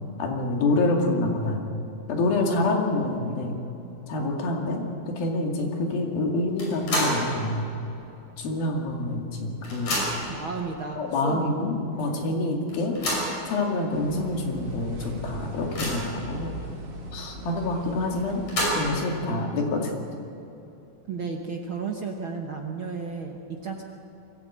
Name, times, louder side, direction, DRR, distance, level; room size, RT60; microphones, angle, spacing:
voice 1, 0.2-1.6 2.1-3.6 4.1-7.7 8.4-10.0 11.0-13.0 13.5-16.5 17.1-18.4 18.8-19.9, left 2 dB, 85° left, 1 dB, 4.2 m, -27 dB
sound 1, 6.6-7.3 7.7-7.8 8.9-9.0 9.3-10.4 11.1-11.2 11.6-11.7 12.7-13.4 14.1-14.2 14.6-14.7 15.2-16.2 18.2-19.1, equal, 55° left, 6.9 m, -29 dB
voice 2, 10.3-12.3 21.1-23.8, right 5 dB, 75° right, 2 dB, 1.1 m, -33 dB
sound 2, 13.9-19.0, right 1 dB, 50° right, 2.3 m, -39 dB
23.0 x 15.0 x 8.6 m, 2.9 s
omnidirectional pair, 4.1 m